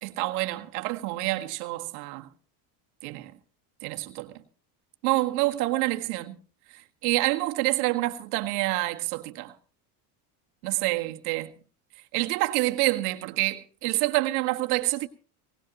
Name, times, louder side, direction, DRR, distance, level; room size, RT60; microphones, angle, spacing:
voice 1, 0.0-2.3 3.0-3.3 3.8-4.3 5.0-6.4 7.0-9.5 10.6-11.5 12.1-15.1, right 19 dB, 85° right, 1.8 m, -27 dB
20.0 x 19.0 x 3.0 m
supercardioid pair, 115°, 44 cm